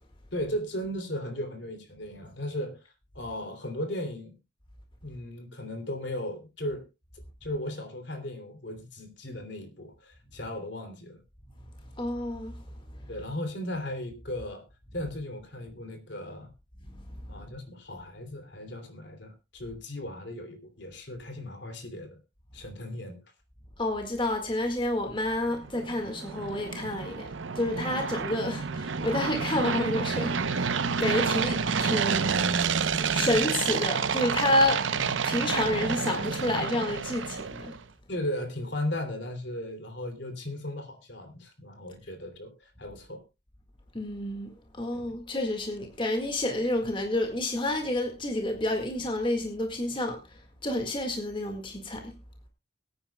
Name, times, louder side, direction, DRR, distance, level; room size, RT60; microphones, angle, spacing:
voice 1, 0.3-4.3 5.0-6.8 7.4-11.2 13.1-14.6 14.9-16.5 17.3-22.2 22.5-23.2 38.1-43.2 44.9-45.1, left 1 dB, 70° left, 2.9 m, -36 dB
voice 2, 11.9-12.6 13.0-13.1 23.8-30.7 31.0-32.4 33.1-34.8 35.2-37.7 43.9-52.1, left 1 dB, 25° left, 1.8 m, -29 dB
sound 1, 25.5-37.8, right 5 dB, 85° right, 0.7 m, -29 dB
23.0 x 9.5 x 2.2 m
head